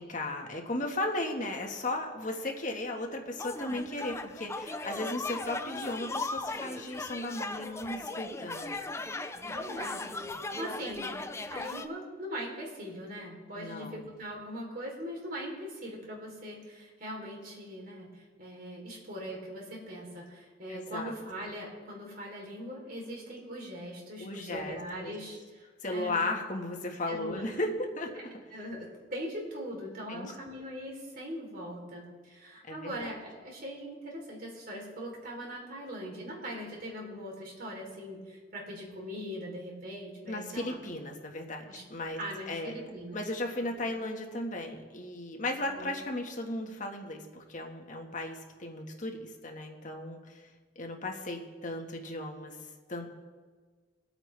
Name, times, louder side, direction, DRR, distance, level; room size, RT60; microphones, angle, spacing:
voice 1, 0.0-8.8 13.5-14.1 20.7-21.1 24.2-25.1 25.8-28.1 30.1-30.3 32.7-33.0 40.3-42.2 42.5-42.7 43.1-50.5 50.7-52.6 52.9-53.1, left 2 dB, 45° left, 2 dB, 1.5 m, -36 dB
sound 1, 3.4-11.9, left 2 dB, 15° left, 0.5 m, -38 dB
voice 2, 9.4-10.2 10.6-11.2 11.5-26.2 27.1-27.7 28.5-40.9 41.7-41.8 42.2-43.2 43.8-43.9 45.6-45.9, equal, 55° right, -1 dB, 3.4 m, -41 dB
22.5 x 8.9 x 3.3 m, 1.5 s
head